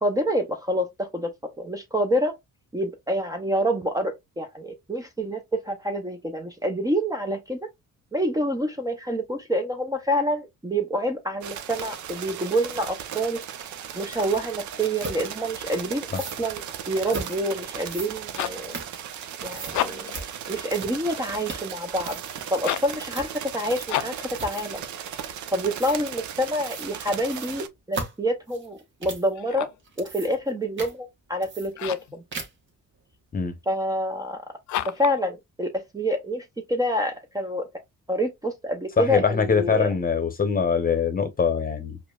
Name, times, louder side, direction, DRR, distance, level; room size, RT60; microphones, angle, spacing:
voice 1, 0.0-1.3 1.6-2.4 2.7-7.7 8.1-13.4 13.9-16.1 16.4-16.6 16.9-18.8 19.4-20.1 20.5-22.2 22.5-24.8 25.5-29.7 30.0-32.2 33.7-34.4 34.9-37.7 38.1-39.9, equal, 10° right, 0.5 m, -27 dB
sound 1, 11.4-27.7, right 9 dB, 70° right, 0.6 m, -37 dB
sound 2, 14.3-14.4 15.0-15.2 16.0-16.4 17.1-17.4 17.8-19.2 19.5-19.8 20.1-20.3 20.7-21.1 21.4-21.7 22.0-22.4 23.1-23.3 23.7-24.0 24.4-24.8 25.7-26.0 26.6-26.9 27.2-29.3 29.8-30.5 30.8-30.9 31.4-32.0 32.3-32.7, right 3 dB, 40° right, 1.1 m, -37 dB
sound 3, 18.2-18.7 19.6-20.2 22.6-23.0 23.9-24.3 29.3-29.9 31.7-32.2 34.7-35.2, left 12 dB, 70° left, 0.4 m, -30 dB
voice 2, 39.0-42.0, left 6 dB, 30° left, 0.8 m, -23 dB
4.9 x 2.1 x 2.3 m
cardioid pair, 90°, 30 cm